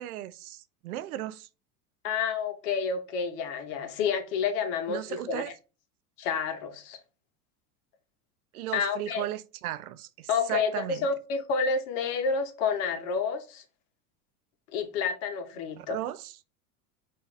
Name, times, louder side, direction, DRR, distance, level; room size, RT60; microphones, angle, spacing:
voice 1, 0.0-1.5 4.9-5.5 8.5-11.1 15.8-16.3, right 13 dB, 75° right, 0.6 m, -36 dB
voice 2, 2.0-5.4 6.2-7.0 8.7-9.3 10.3-13.6 14.7-16.0, left 5 dB, 60° left, 1.1 m, -29 dB
5.5 x 2.7 x 3.2 m
hypercardioid pair, 90°, 44 cm